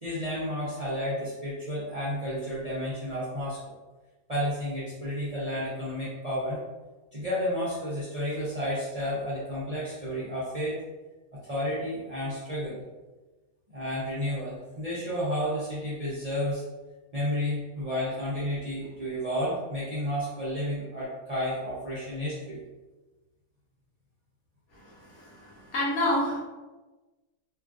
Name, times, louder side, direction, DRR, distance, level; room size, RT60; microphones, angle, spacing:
voice 1, 0.0-3.6 4.3-6.6 7.1-10.8 11.4-12.8 13.7-16.6 17.1-22.6, equal, 45° right, -9 dB, 0.5 m, -31 dB
voice 2, 24.7-26.4, left 1 dB, 70° left, -5 dB, 1.3 m, -29 dB
2.9 x 2.4 x 2.5 m, 1.2 s
omnidirectional pair, 1.6 m